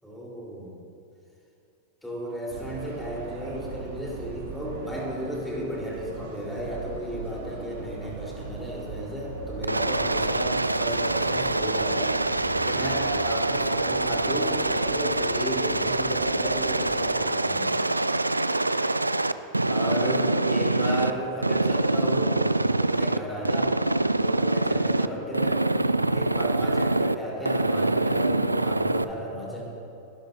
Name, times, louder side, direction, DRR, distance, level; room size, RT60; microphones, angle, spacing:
voice 1, 0.0-0.8 2.0-12.2 12.6-17.9 19.7-22.4 22.8-23.8 24.1-25.6 26.1-29.6, equal, 5° left, -4 dB, 4.1 m, -34 dB
sound 1, 2.5-17.1, right 4 dB, 50° right, 2.7 m, -40 dB
Aircraft, 9.6-21.1 21.4-23.2 23.4-25.1 25.3-27.1 27.5-29.0, right 2 dB, 85° right, 0.4 m, -25 dB
26.5 x 12.0 x 2.8 m, 2.6 s
figure-of-eight pair, 90°, 0 cm